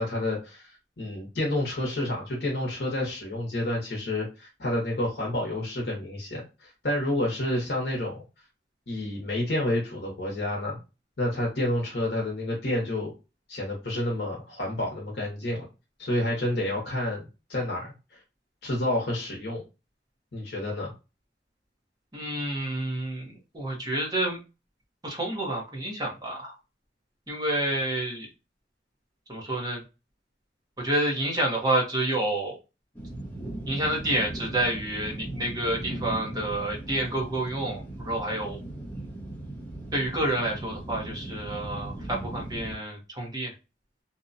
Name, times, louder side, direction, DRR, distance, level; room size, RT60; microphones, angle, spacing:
voice 1, 0.0-8.1 8.9-10.8 11.2-13.1 13.5-15.7 16.0-17.9 18.6-19.6 20.3-20.9, left 1 dB, 65° left, -2 dB, 0.8 m, -29 dB
voice 2, 22.1-24.4 25.0-26.6 27.3-28.3 29.3-29.8 30.8-32.6 33.7-38.6 39.9-43.5, right 1 dB, 20° right, -1 dB, 0.8 m, -29 dB
sound 1, 32.9-42.7, right 1 dB, 10° left, 0.8 m, -38 dB
2.7 x 2.1 x 2.5 m, 0.29 s
head